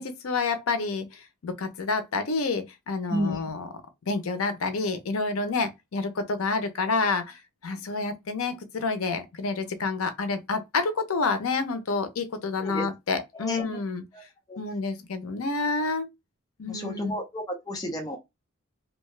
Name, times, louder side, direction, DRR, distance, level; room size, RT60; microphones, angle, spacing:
voice 1, 0.0-3.7 4.1-14.0 14.6-16.1 16.6-17.2, left 3 dB, 80° left, 0.6 m, -29 dB
voice 2, 3.1-3.4 12.6-12.9 13.3-13.8 14.1-14.2 14.5-14.6 16.7-18.2, equal, 20° left, 0.6 m, -31 dB
2.7 x 2.2 x 3.1 m
head